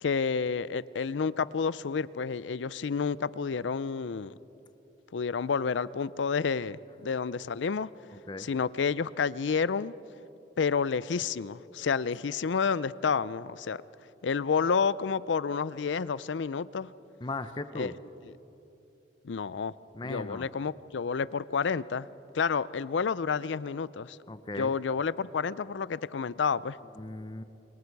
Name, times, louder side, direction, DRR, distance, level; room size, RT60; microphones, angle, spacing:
voice 1, 0.0-4.3 5.1-7.9 8.4-9.9 10.6-13.8 14.2-16.9 17.7-17.9 19.2-19.7 20.0-22.1 22.3-24.2 24.6-26.8, left 5 dB, 85° left, 18 dB, 0.5 m, -30 dB
voice 2, 17.2-17.9 19.9-20.5 24.3-24.7 27.0-27.4, left 2 dB, 25° left, 11 dB, 0.7 m, -37 dB
28.5 x 24.0 x 4.7 m, 2.9 s
head